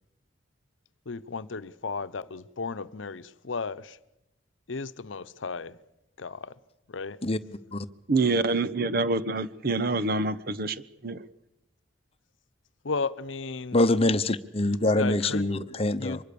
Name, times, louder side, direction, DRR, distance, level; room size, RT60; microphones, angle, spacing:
voice 1, 1.1-4.0 4.7-5.8 6.2-6.5 6.9-7.2 12.8-13.9 15.0-15.4 16.0-16.2, left 4 dB, 90° left, 0.8 m, -34 dB
voice 2, 8.1-11.2, right 3 dB, 50° right, 0.9 m, -26 dB
voice 3, 13.7-16.2, left 2 dB, 30° left, 0.9 m, -24 dB
24.5 x 21.5 x 6.9 m
head